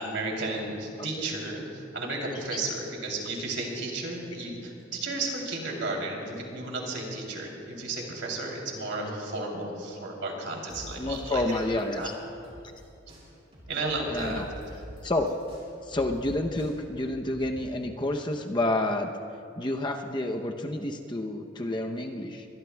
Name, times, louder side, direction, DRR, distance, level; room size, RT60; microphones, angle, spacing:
voice 1, 0.0-11.6 12.0-12.1 13.7-14.4, right 2 dB, 75° right, -1 dB, 3.2 m, -33 dB
sound 1, 10.7-12.8 13.1-17.7, equal, 30° right, 4.5 m, -45 dB
voice 2, 11.0-12.1 14.1-14.5 15.0-15.3 15.9-19.1 19.6-22.5, left 1 dB, 25° left, 3 dB, 0.7 m, -29 dB
23.0 x 22.0 x 2.3 m, 2.6 s
head